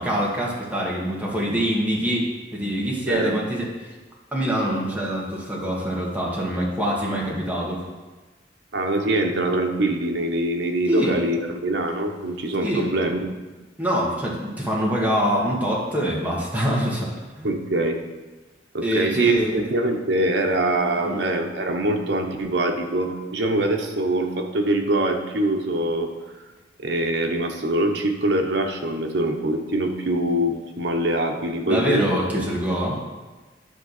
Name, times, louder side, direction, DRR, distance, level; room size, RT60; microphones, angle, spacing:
voice 1, 0.0-3.9 4.3-7.8 10.9-11.2 12.6-12.9 13.8-17.1 17.4-17.5 18.8-19.7 21.0-21.2 31.7-33.0, equal, 10° right, -4 dB, 1.8 m, -25 dB
voice 2, 3.0-3.4 8.7-13.3 17.4-18.0 18.7-26.1 26.8-32.0 32.3-32.5, right 1 dB, 85° right, 3 dB, 1.0 m, -23 dB
10.0 x 3.7 x 6.6 m, 1.2 s
head